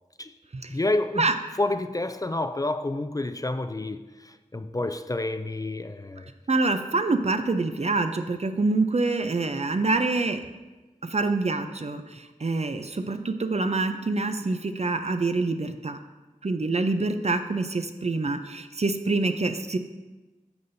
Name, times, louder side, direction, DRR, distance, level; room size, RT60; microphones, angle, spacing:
voice 1, 0.7-6.3, left 2 dB, 25° left, 0.4 m, -29 dB
voice 2, 6.5-10.4 11.0-16.0 16.4-19.8, right 3 dB, 55° right, 0.5 m, -26 dB
9.5 x 6.9 x 2.6 m
wide cardioid pair, 45°, 14 cm